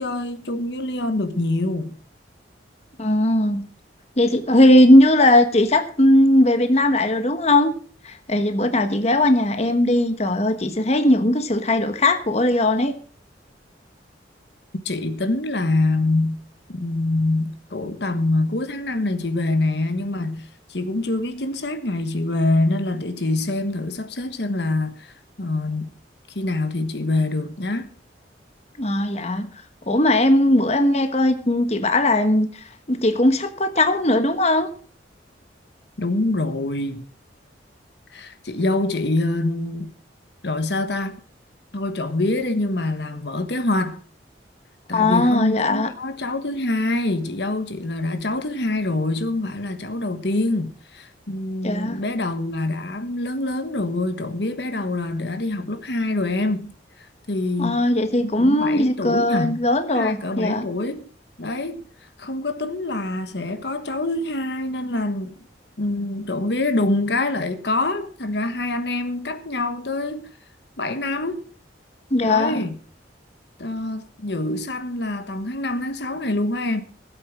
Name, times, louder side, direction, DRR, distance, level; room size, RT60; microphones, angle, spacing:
voice 1, 0.0-1.9 14.8-16.4 16.7-25.9 26.3-27.9 36.0-37.0 38.1-39.9 40.4-41.2 41.7-44.0 44.9-56.7 57.0-57.8 58.2-59.6 59.9-61.0 61.4-65.3 65.8-70.3 70.8-71.4 72.2-72.8 73.6-76.8, left 2 dB, 65° left, 1.3 m, -25 dB
voice 2, 3.0-3.7 4.2-7.7 8.0-12.9 28.8-29.5 29.9-34.7 44.9-45.9 51.6-52.0 57.6-60.7 72.1-72.6, left 1 dB, 35° left, 1.2 m, -18 dB
16.0 x 8.3 x 6.0 m
head